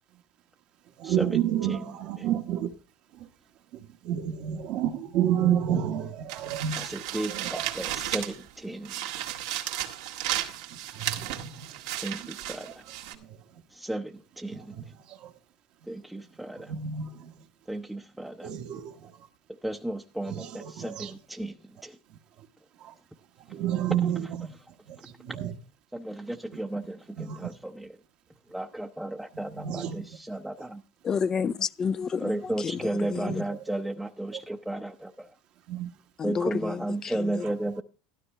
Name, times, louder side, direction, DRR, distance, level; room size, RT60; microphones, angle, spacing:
voice 1, 1.0-2.7 3.1-3.3 3.7-7.8 10.9-12.3 12.6-12.7 13.1-13.4 14.5-15.3 16.6-17.4 18.4-19.3 20.2-21.2 22.1-22.5 22.8-23.0 23.4-24.6 24.9-25.5 27.2-27.6 29.3-30.1 33.1-33.8 34.3-34.4 35.7-35.9 37.4-37.5, right 10 dB, 55° right, 1.2 m, -31 dB
sound 1, 6.3-8.5 8.8-13.1, right 12 dB, 85° right, 1.8 m, -34 dB
voice 2, 6.8-9.2 12.0-12.8 13.7-14.8 15.9-16.7 17.7-18.5 19.6-22.0 25.3-25.4 25.9-27.9 28.5-30.8 32.2-35.3 36.2-37.8, right 1 dB, 5° right, 0.7 m, -34 dB
voice 3, 31.0-32.3 32.8-33.4 36.2-37.4, left 6 dB, 30° left, 0.5 m, -30 dB
12.5 x 12.0 x 3.3 m
supercardioid pair, 115°, 2 cm